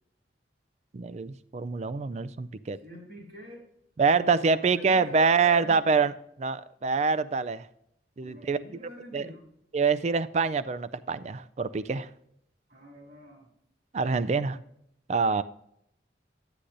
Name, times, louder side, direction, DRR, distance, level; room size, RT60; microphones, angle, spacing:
voice 1, 0.9-2.8 4.0-6.1 6.4-7.7 8.2-8.6 9.1-9.3 9.7-12.1 13.9-14.6 15.1-15.4, right 5 dB, 35° right, 0.3 m, -25 dB
voice 2, 2.8-3.6 4.1-6.1 8.2-9.5 12.7-13.5, right 1 dB, 55° right, 3.0 m, -45 dB
10.0 x 9.8 x 2.6 m
head